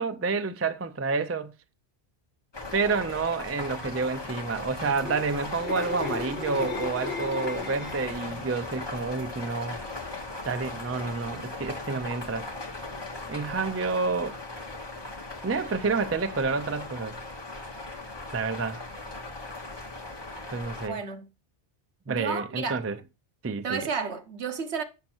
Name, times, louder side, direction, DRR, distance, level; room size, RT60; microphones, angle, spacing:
voice 1, 0.0-1.5 2.7-9.8 10.4-12.5 13.3-14.4 15.4-17.1 18.3-18.9 20.5-21.0 22.1-23.0 23.4-23.9, right 4 dB, 25° right, 0.3 m, -29 dB
sound 1, 2.5-20.9, left 2 dB, 25° left, 1.3 m, -38 dB
sound 2, 4.9-8.2 8.6-8.9, left 4 dB, 65° left, 1.2 m, -36 dB
voice 2, 20.9-21.3 22.1-22.8 23.6-24.8, right 5 dB, 75° right, 1.4 m, -32 dB
7.5 x 6.3 x 4.4 m
omnidirectional pair, 1.1 m